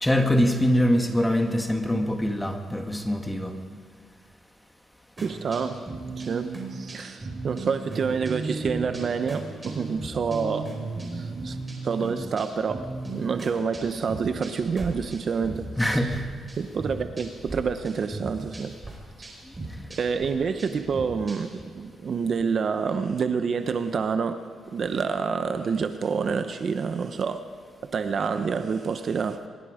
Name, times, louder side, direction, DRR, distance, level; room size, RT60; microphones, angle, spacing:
voice 1, 0.0-3.6 15.8-16.2, equal, 5° left, 1.9 m, -23 dB
sound 1, 5.2-16.2 16.5-17.6 17.8-21.6, right 3 dB, 20° right, 5.0 m, -36 dB
voice 2, 5.2-10.7 11.1-11.6 11.8-16.0 16.6-18.8 19.2-19.3 20.0-27.4 27.9-29.4, right 5 dB, 50° right, 1.0 m, -28 dB
24.5 x 22.0 x 5.1 m
cardioid pair, 120°, 0 cm